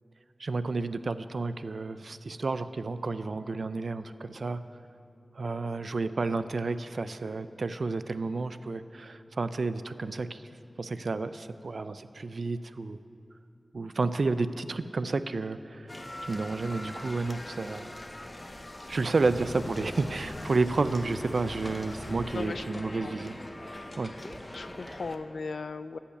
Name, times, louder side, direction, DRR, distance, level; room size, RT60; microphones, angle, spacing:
voice 1, 0.4-4.6 5.4-10.4 10.8-13.0 13.7-15.9 16.2-17.9 18.9-23.4 24.0-24.1, right 3 dB, 75° right, 12 dB, 0.4 m, -31 dB
sound 1, 15.9-25.2, left 1 dB, 25° left, 0.8 m, -43 dB
sound 2, 19.2-24.2, left 2 dB, 55° left, 0.8 m, -44 dB
voice 2, 22.3-23.1 24.5-26.0, left 4 dB, 90° left, 13 dB, 0.4 m, -37 dB
14.5 x 5.7 x 8.4 m, 2.7 s
wide cardioid pair, 65°, 0 cm